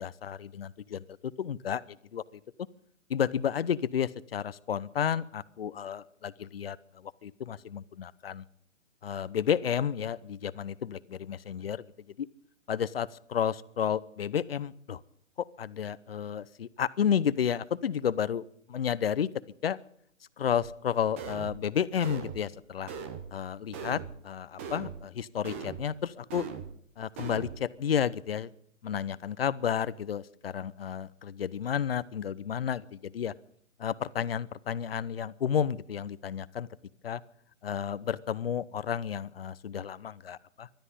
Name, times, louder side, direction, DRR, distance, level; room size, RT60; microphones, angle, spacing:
voice 1, 0.0-2.4 3.1-8.4 9.0-11.8 12.2-12.3 12.7-15.0 15.4-18.4 18.7-19.3 19.6-19.8 20.4-22.9 23.3-26.5 27.0-28.5 28.8-33.3 33.8-36.7 37.0-37.2 37.6-40.7, left 8 dB, 50° left, 19 dB, 0.8 m, -31 dB
sound 1, 20.6-20.7 21.2-21.6 22.0-22.4 22.9-23.3 23.7-24.2 24.6-25.0 25.4-25.9 26.3-26.7 27.2-27.6, right 6 dB, 10° right, 0.6 m, -40 dB
20.5 x 12.5 x 5.5 m, 0.64 s
figure-of-eight pair, 140°, 39 cm